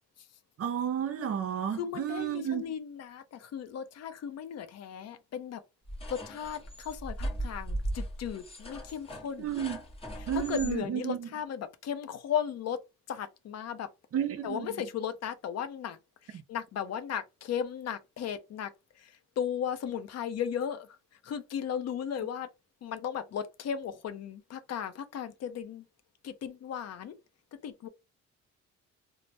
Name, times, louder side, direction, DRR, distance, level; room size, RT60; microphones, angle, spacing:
voice 1, 0.6-2.6 9.4-9.8 10.3-11.3 14.1-14.7, right 9 dB, 50° right, 0.6 m, -32 dB
voice 2, 1.8-5.6 6.1-9.5 10.2-12.8 13.1-13.9 14.4-16.0 16.2-18.7 19.0-20.9 21.2-22.5 22.8-25.8 26.2-27.2 27.6-27.9, left 8 dB, 60° left, 0.5 m, -36 dB
sound 1, 5.9-10.8, right 1 dB, 20° left, 0.9 m, -38 dB
3.2 x 2.0 x 2.6 m
cardioid pair, 90°, 30 cm